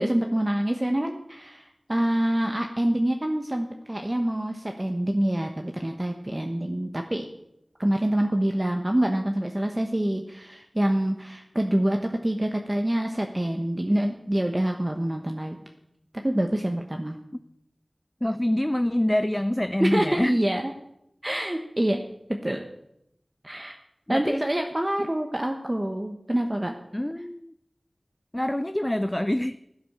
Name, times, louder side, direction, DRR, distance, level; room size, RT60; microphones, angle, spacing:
voice 1, 0.0-7.3 7.8-15.6 16.2-17.2 19.8-20.7 21.2-22.0 22.3-22.7 23.4-23.8 24.1-26.7, right 1 dB, 25° right, 3 dB, 1.1 m, -26 dB
voice 2, 18.2-20.4 24.1-24.4 25.0-25.1 26.9-27.5 28.3-29.6, left 1 dB, 15° left, 12 dB, 0.4 m, -26 dB
15.0 x 8.8 x 6.7 m, 0.79 s
wide cardioid pair, 60°, 0 cm